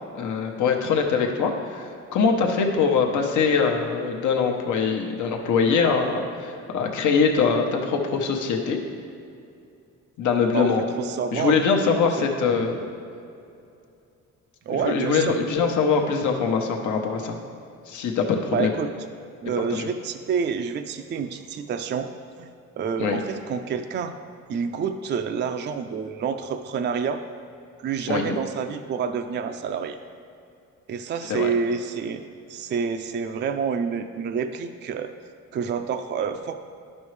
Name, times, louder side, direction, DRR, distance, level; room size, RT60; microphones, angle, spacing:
voice 1, 0.1-8.8 10.2-10.8 11.3-12.9 14.7-17.4 17.9-18.7 19.6-19.9 23.0-23.2 28.1-28.4 31.3-31.5, left 5 dB, 75° left, 2 dB, 1.0 m, -23 dB
voice 2, 11.0-11.6 14.7-15.4 18.5-18.9 19.4-22.1 22.4-24.1 24.5-27.2 27.8-30.0 30.9-32.2 32.5-35.1 35.5-36.5, right 6 dB, 35° right, 7 dB, 0.4 m, -28 dB
11.5 x 5.4 x 3.2 m, 2.5 s
cardioid pair, 90°, 30 cm